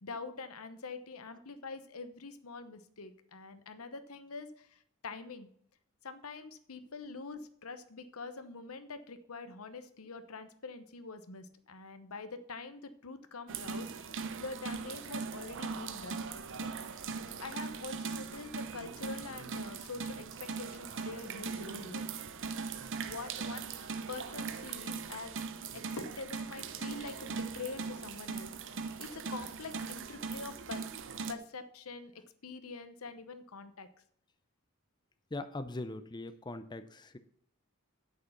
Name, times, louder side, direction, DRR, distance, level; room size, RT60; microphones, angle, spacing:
voice 1, 0.0-5.5 6.0-16.2 16.6-16.7 17.4-22.1 23.0-25.3 25.7-30.8 31.3-33.9, left 3 dB, 85° left, 10 dB, 1.0 m, -45 dB
sound 1, 13.5-31.3, right 5 dB, 60° right, 0.8 m, -40 dB
voice 2, 35.3-37.2, left 2 dB, 20° left, 11 dB, 0.6 m, -41 dB
8.3 x 7.9 x 5.9 m, 0.65 s
head